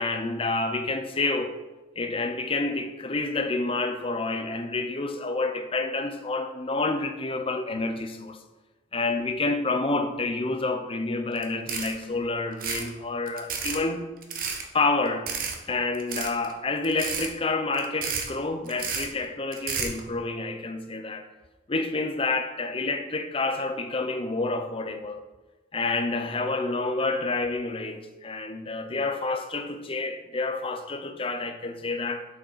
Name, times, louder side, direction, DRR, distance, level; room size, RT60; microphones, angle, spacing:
voice 1, 0.0-1.6 2.0-8.4 8.9-14.0 14.7-15.3 15.7-21.3 21.7-25.2 25.7-32.3, left 3 dB, 30° left, 0.7 m, -28 dB
sound 1, 11.4-11.5 11.7-12.0 12.5-12.9 13.3-13.8 14.2-14.6 15.3-15.6 15.9-16.5 16.8-17.3 17.7-18.3 18.7-19.1 19.5-20.0, right 6 dB, 50° right, 1.0 m, -31 dB
7.4 x 6.6 x 4.6 m
head